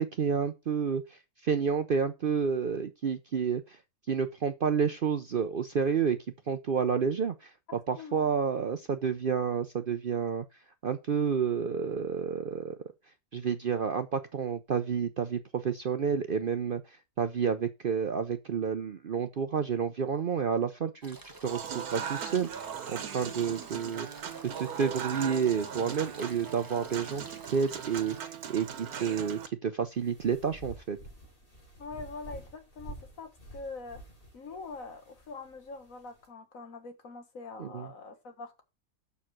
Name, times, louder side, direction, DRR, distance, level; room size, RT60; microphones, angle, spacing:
voice 1, 0.0-3.8 4.1-6.2 6.5-10.4 10.8-12.8 13.3-24.1 24.6-27.2 27.5-31.0 37.6-37.9, right 6 dB, 50° right, 0.6 m, -30 dB
voice 2, 8.0-8.3 31.8-34.0 34.3-38.6, left 4 dB, 65° left, 1.8 m, -44 dB
sound 1, 21.0-28.2, right 2 dB, 20° right, 0.7 m, -49 dB
Human voice / Acoustic guitar / Piano, 21.5-29.5, right 8 dB, 90° right, 1.5 m, -39 dB
sound 2, 29.8-36.3, right 1 dB, 40° left, 4.1 m, -49 dB
7.0 x 6.3 x 6.1 m
omnidirectional pair, 1.5 m